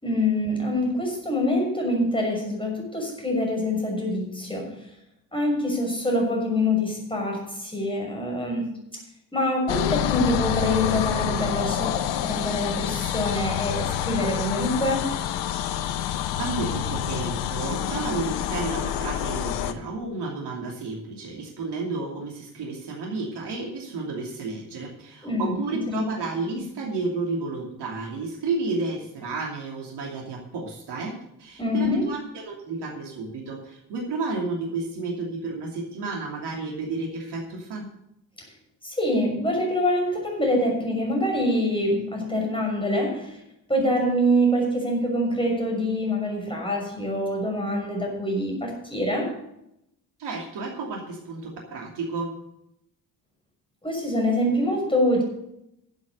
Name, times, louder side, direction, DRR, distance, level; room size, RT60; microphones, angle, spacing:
voice 1, 0.0-4.8 5.3-8.8 9.3-15.2 25.2-25.5 31.6-32.1 38.8-43.4 43.7-49.4 53.8-55.2, left 1 dB, 10° left, 0 dB, 6.4 m, -25 dB
sound 1, 9.7-19.7, left 10 dB, 60° left, 0.9 m, -27 dB
voice 2, 16.4-37.9 50.2-52.3, right 3 dB, 55° right, -1 dB, 2.8 m, -31 dB
12.0 x 8.3 x 6.6 m, 0.79 s
figure-of-eight pair, 40°, 49 cm